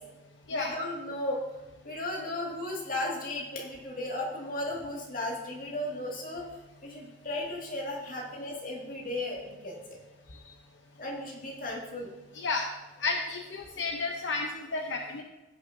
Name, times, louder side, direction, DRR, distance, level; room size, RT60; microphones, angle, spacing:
voice 1, 0.5-1.4 1.8-6.4 6.8-10.0 11.0-12.1, left 1 dB, 45° left, -3 dB, 2.1 m, -35 dB
voice 2, 12.3-12.7 13.0-15.2, left 3 dB, 75° left, 2 dB, 0.8 m, -32 dB
15.5 x 6.0 x 2.7 m, 1.1 s
head